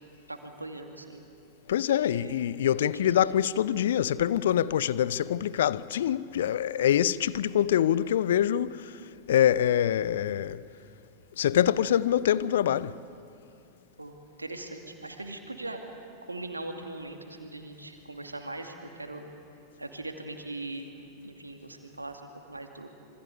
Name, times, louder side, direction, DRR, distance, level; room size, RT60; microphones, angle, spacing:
voice 1, 0.3-1.3 2.0-2.7 14.0-15.8 16.2-19.2 19.8-22.2 22.5-22.9, right 2 dB, 80° right, 2.5 m, -40 dB
voice 2, 1.7-9.0 9.3-10.6 11.4-13.0, left 10 dB, 60° left, 0.6 m, -25 dB
26.5 x 24.5 x 8.4 m
figure-of-eight pair, 90°, 0 cm